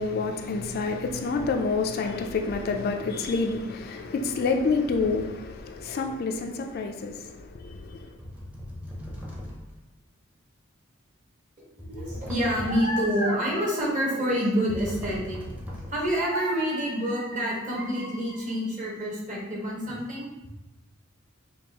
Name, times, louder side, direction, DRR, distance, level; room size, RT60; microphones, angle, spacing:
voice 1, 0.0-8.1, left 4 dB, 50° left, 0.3 m, -28 dB
sound 1, 7.2-7.4 8.2-9.9 11.8-13.1 14.7-16.2, left 1 dB, 10° right, 0.6 m, -38 dB
voice 2, 11.8-15.4 15.9-20.3, equal, 40° right, 1.1 m, -27 dB
5.3 x 2.3 x 2.8 m
head